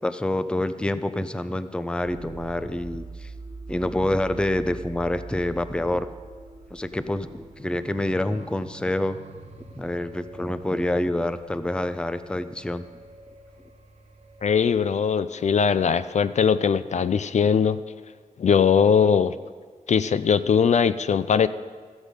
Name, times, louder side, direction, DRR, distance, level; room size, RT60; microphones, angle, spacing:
voice 1, 0.0-3.3 3.7-6.1 6.7-9.2 9.8-12.9, left 1 dB, 5° left, 12 dB, 0.5 m, -27 dB
sound 1, 2.0-14.6, right 3 dB, 60° right, 1.1 m, -43 dB
voice 2, 14.4-17.8 18.4-19.3 19.9-21.5, left 6 dB, 65° left, 13 dB, 0.4 m, -20 dB
14.0 x 8.0 x 5.2 m, 1.5 s
wide cardioid pair, 90°, 13 cm